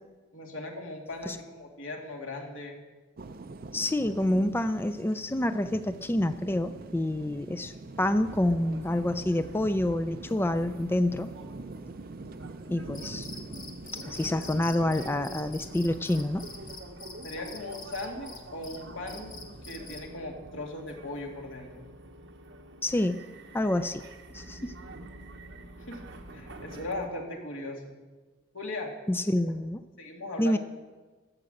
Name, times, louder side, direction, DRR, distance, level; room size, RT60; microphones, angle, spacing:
voice 1, 0.3-2.8 14.3-14.5 17.2-19.3 19.7-21.9 25.9-26.0 26.3-27.9 28.5-28.9 30.0-30.6, left 2 dB, 90° left, 1 dB, 2.4 m, -38 dB
sound 1, 3.2-16.8, right 3 dB, 50° right, 0.6 m, -44 dB
voice 2, 3.7-11.3 12.7-13.3 14.1-16.5 22.8-23.2 23.5-24.0 24.3-24.7 29.1-29.8 30.4-30.6, left 1 dB, 10° left, 11 dB, 0.4 m, -28 dB
sound 2, 8.2-27.1, right 1 dB, 65° right, 1.2 m, -47 dB
Cricket, 12.9-20.1, left 2 dB, 45° left, 1.6 m, -46 dB
13.5 x 7.5 x 7.8 m, 1.3 s
head